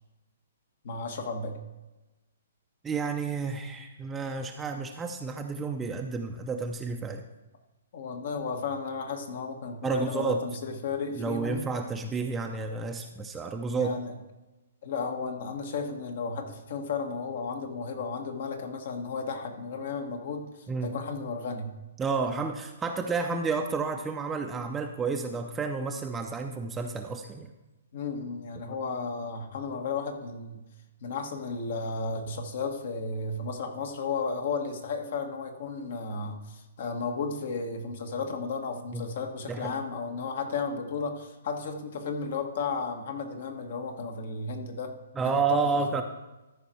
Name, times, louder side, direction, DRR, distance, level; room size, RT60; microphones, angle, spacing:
voice 1, 0.8-1.6 7.9-11.7 13.7-14.1 14.8-20.5 20.8-21.7 27.9-30.6 31.0-44.9 45.2-45.6, left 4 dB, 60° left, 4 dB, 1.6 m, -34 dB
voice 2, 2.8-7.2 9.8-10.4 11.2-13.9 20.7-20.9 22.0-27.5 38.9-39.0 39.5-39.8 45.2-46.0, right 4 dB, 15° right, 4 dB, 0.6 m, -30 dB
13.5 x 5.2 x 4.5 m, 1.0 s
hypercardioid pair, 130°, 0 cm